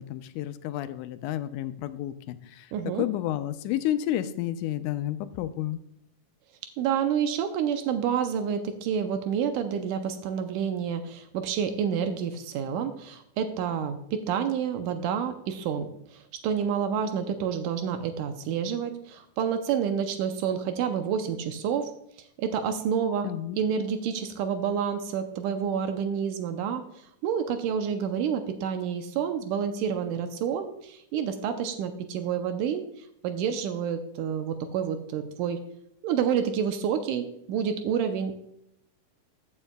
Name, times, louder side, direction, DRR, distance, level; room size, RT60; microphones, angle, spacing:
voice 1, 0.0-2.7 3.0-5.8 23.2-23.6, left 12 dB, 80° left, 11 dB, 2.0 m, -31 dB
voice 2, 2.7-3.1 6.8-21.9 22.4-35.6 36.0-38.3, right 7 dB, 85° right, 7 dB, 2.2 m, -29 dB
14.0 x 7.1 x 2.3 m, 0.76 s
omnidirectional pair, 3.6 m